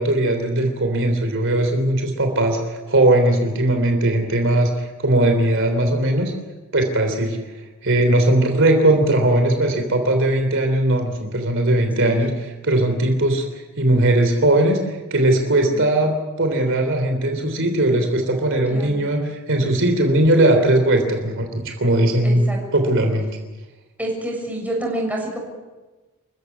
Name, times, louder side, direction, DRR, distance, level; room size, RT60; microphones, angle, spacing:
voice 1, 0.0-6.3 6.7-7.4 7.8-22.5 22.7-23.3, right 1 dB, 60° right, 4 dB, 3.4 m, -19 dB
voice 2, 12.0-12.3 15.7-15.9 18.7-19.1 22.2-22.6 24.0-25.4, right 1 dB, 5° right, -1 dB, 7.0 m, -28 dB
27.5 x 15.5 x 9.6 m, 1.2 s
head